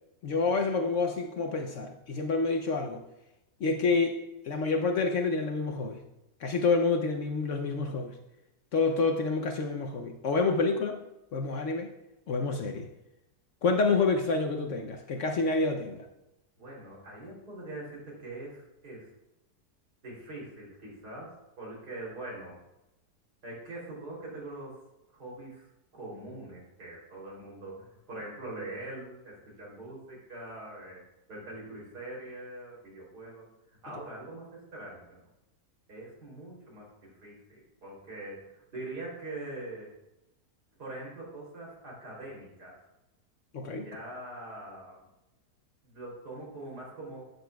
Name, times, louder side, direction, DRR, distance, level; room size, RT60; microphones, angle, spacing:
voice 1, 0.2-3.0 3.6-6.0 6.4-8.2 8.7-11.0 11.3-11.9 12.3-12.9 13.6-16.1 43.5-43.9, left 4 dB, 60° left, 4 dB, 0.9 m, -28 dB
voice 2, 16.6-19.1 20.0-22.6 23.4-24.8 25.1-25.7 25.9-31.0 31.3-33.5 33.8-35.2 35.9-39.9 40.8-42.8 43.8-45.0 45.8-47.2, right 2 dB, 80° right, -4 dB, 3.7 m, -43 dB
12.0 x 8.2 x 2.3 m, 0.93 s
omnidirectional pair, 1.7 m